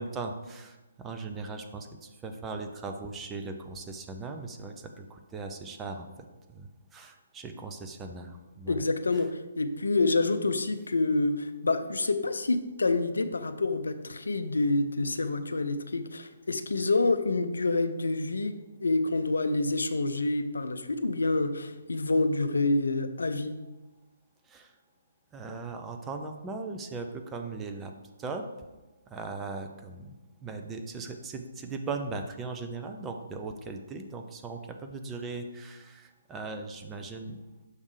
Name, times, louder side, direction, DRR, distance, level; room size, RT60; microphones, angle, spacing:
voice 1, 0.0-8.8 9.1-9.2 24.5-24.7 25.3-27.9 28.2-28.5 29.1-37.4, right 3 dB, 15° right, 5 dB, 0.5 m, -39 dB
voice 2, 8.7-18.5 18.8-23.6, left 2 dB, 75° left, 10 dB, 0.5 m, -27 dB
6.4 x 3.6 x 4.9 m, 1.1 s
figure-of-eight pair, 140°, 0 cm